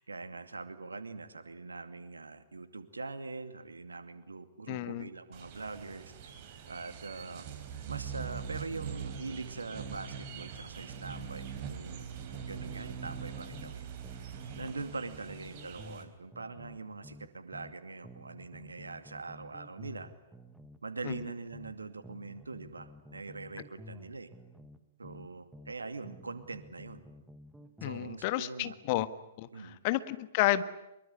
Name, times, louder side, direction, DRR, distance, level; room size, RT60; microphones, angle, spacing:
voice 1, 0.0-6.0 6.7-7.4 7.9-12.1 12.4-13.8 14.6-20.1 20.8-24.3 25.0-27.0 27.8-28.7 29.5-29.8, right 3 dB, 80° right, 10 dB, 2.5 m, -43 dB
voice 2, 4.7-5.1 21.0-21.1 27.8-29.1 29.4-30.6, left 15 dB, 40° left, 13 dB, 1.5 m, -31 dB
sound 1, 5.3-16.0, right 7 dB, 40° right, 4.2 m, -43 dB
sound 2, 12.3-13.8 14.0-17.8 18.0-21.8 22.0-25.8 26.0-28.2, left 1 dB, 5° right, 1.8 m, -52 dB
24.5 x 23.0 x 9.9 m, 0.89 s
figure-of-eight pair, 115°, 0 cm